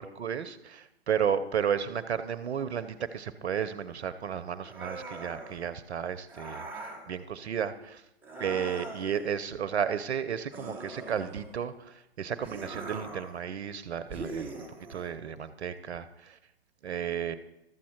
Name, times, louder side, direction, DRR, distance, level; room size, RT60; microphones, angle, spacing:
voice 1, 0.0-8.0 8.4-16.4 16.8-17.4, right 8 dB, 75° right, 14 dB, 0.8 m, -33 dB
sound 1, 4.6-5.6 6.3-7.1 8.2-9.2 10.5-11.6 12.4-13.4 14.1-15.1, right 2 dB, 5° right, 1.1 m, -41 dB
13.0 x 7.3 x 4.5 m, 0.89 s
hypercardioid pair, 130°, 33 cm